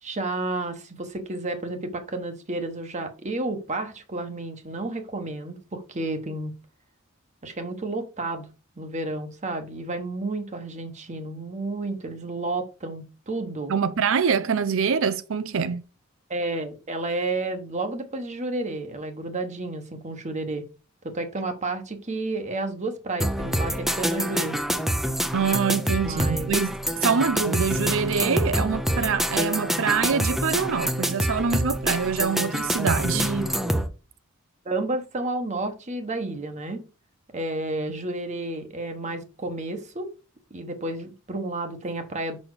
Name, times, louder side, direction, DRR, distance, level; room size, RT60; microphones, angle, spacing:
voice 1, 0.0-6.5 7.4-8.5 8.8-13.7 16.3-20.7 21.0-24.6 26.0-26.5 33.1-33.8 34.6-36.8 37.3-40.1 40.5-42.4, right 2 dB, 35° right, 1.1 m, -31 dB
voice 2, 13.7-15.8 25.3-26.7 27.0-33.3, right 6 dB, 65° right, 0.5 m, -25 dB
sound 1, 23.2-33.9, equal, ahead, 0.6 m, -26 dB
6.0 x 4.3 x 4.8 m
head